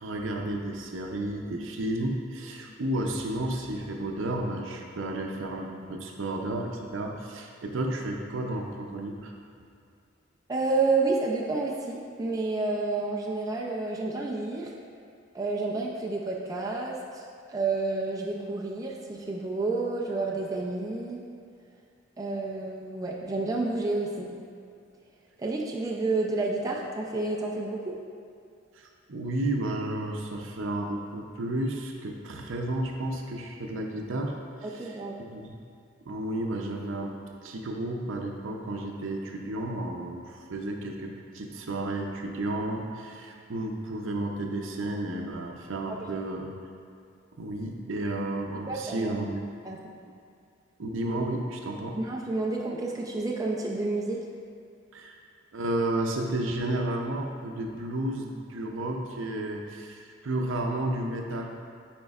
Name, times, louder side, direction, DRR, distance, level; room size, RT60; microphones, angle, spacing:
voice 1, 0.0-9.3 28.7-35.5 36.0-37.2 37.4-46.5 47.4-49.5 50.8-52.0 54.9-55.1 55.5-61.5, right 1 dB, 75° right, 1 dB, 0.6 m, -32 dB
voice 2, 10.5-14.8 15.3-17.2 17.5-21.2 22.2-24.3 25.4-28.0 34.6-35.2 45.9-46.3 48.7-49.2 49.6-49.8 52.0-54.2, right 3 dB, 20° right, -2 dB, 0.4 m, -30 dB
9.2 x 4.3 x 2.4 m, 2.4 s
head